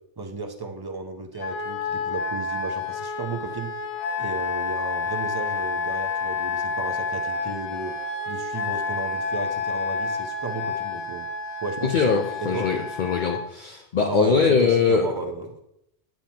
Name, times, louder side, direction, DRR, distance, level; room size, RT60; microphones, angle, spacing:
voice 1, 0.2-3.7 4.2-7.9 8.3-11.3 11.6-12.7 14.0-15.6, right 3 dB, 25° right, 5 dB, 0.6 m, -34 dB
Wind instrument woodwind instrument, 1.4-13.4, left 4 dB, 80° left, 1.1 m, -29 dB
voice 2, 11.8-15.1, left 5 dB, 55° left, 3 dB, 0.7 m, -22 dB
8.6 x 5.8 x 2.8 m, 0.80 s
omnidirectional pair, 1.1 m